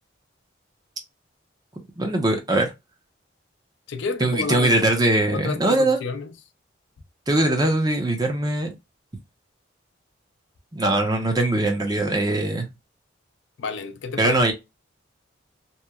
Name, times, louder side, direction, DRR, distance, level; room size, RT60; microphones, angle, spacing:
voice 1, 2.0-2.7 4.2-6.0 7.3-8.7 10.7-12.7 14.2-14.5, right 2 dB, 20° right, 0.6 m, -21 dB
voice 2, 3.9-4.8 5.3-6.3 13.6-14.5, left 4 dB, 70° left, 0.4 m, -30 dB
2.9 x 2.1 x 2.2 m
head